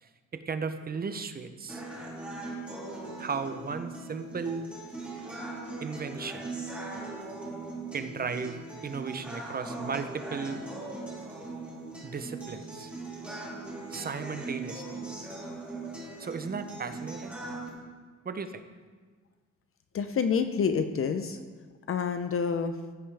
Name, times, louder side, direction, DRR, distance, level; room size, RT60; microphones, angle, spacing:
voice 1, 0.0-1.8 3.2-4.7 5.8-6.4 7.9-10.6 12.0-12.9 13.9-14.8 16.2-17.4 18.2-18.6, right 5 dB, 30° right, 10 dB, 0.7 m, -35 dB
sound 1, 1.7-17.7, right 2 dB, 5° right, 2.8 m, -40 dB
voice 2, 19.9-21.4 21.9-22.8, left 6 dB, 45° left, 9 dB, 0.6 m, -28 dB
15.0 x 5.4 x 3.4 m, 1.5 s
cardioid pair, 90°, 30 cm